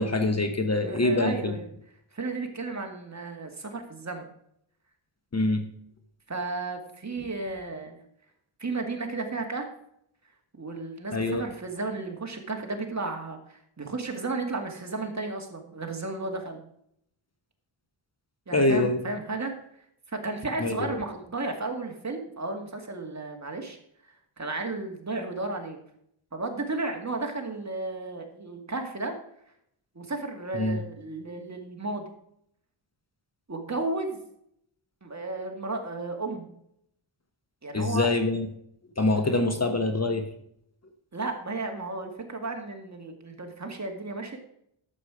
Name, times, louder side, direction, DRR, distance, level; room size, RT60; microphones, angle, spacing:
voice 1, 0.0-1.6 5.3-5.6 11.1-11.4 18.5-19.0 20.6-20.9 30.5-30.8 37.7-38.5 39.0-40.3, left 2 dB, 30° left, 7 dB, 1.2 m, -25 dB
voice 2, 0.8-1.7 2.1-4.3 6.3-8.0 8.6-9.7 10.6-16.6 18.5-19.5 20.1-23.8 24.4-25.8 26.3-29.2 30.0-32.0 33.5-34.2 35.0-36.5 37.6-38.1 41.1-44.4, right 3 dB, 35° right, 3 dB, 2.2 m, -33 dB
12.0 x 7.6 x 4.9 m, 0.72 s
wide cardioid pair, 95°, 50 cm